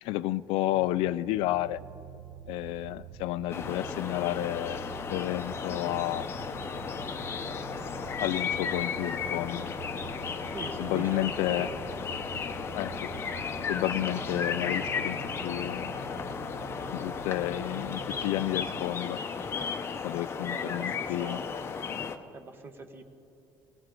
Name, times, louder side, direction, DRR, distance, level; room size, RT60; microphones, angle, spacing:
voice 1, 0.0-1.8 2.5-4.8 5.1-6.3 8.2-9.7 10.8-11.7 12.8-13.1 13.7-15.2 15.4-15.9 16.9-19.2 20.0-21.4, left 15 dB, 75° left, 15 dB, 0.4 m, -31 dB
sound 1, 0.7-18.8, right 8 dB, 75° right, 0.8 m, -45 dB
sound 2, 3.5-22.2, left 6 dB, 25° left, 0.7 m, -34 dB
voice 2, 10.5-11.8 20.5-21.5 22.3-23.0, right 3 dB, 25° right, 7 dB, 1.1 m, -42 dB
18.5 x 18.5 x 3.8 m, 2.8 s
cardioid pair, 160°, 9 cm